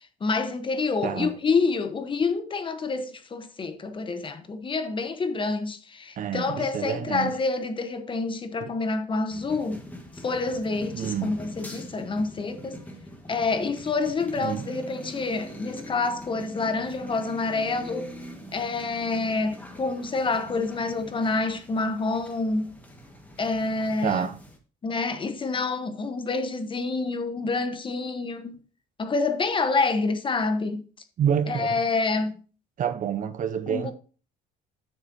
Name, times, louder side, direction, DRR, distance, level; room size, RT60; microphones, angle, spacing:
voice 1, 0.2-9.8 10.2-12.8 13.3-18.1 18.5-22.7 23.4-24.3 24.8-28.6 29.0-30.8 31.5-32.3 33.7-33.9, left 3 dB, 30° left, 1.0 m, -27 dB
voice 2, 6.2-7.3 8.6-8.7 10.9-11.3 14.4-14.6 24.0-24.4 31.2-31.8 32.8-33.9, right 8 dB, 50° right, 0.7 m, -28 dB
sound 1, 9.3-24.6, equal, 10° left, 1.5 m, -43 dB
9.4 x 6.6 x 2.7 m
cardioid pair, 110°, 17 cm